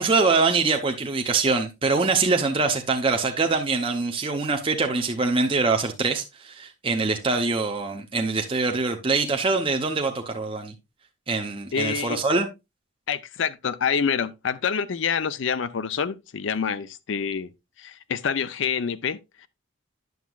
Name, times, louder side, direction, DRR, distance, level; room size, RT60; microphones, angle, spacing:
voice 1, 0.0-10.7 11.3-12.5, right 4 dB, 25° right, 0.6 m, -24 dB
voice 2, 11.7-12.2 13.1-17.5 17.8-19.5, left 6 dB, 70° left, 0.5 m, -27 dB
9.4 x 7.0 x 2.3 m
head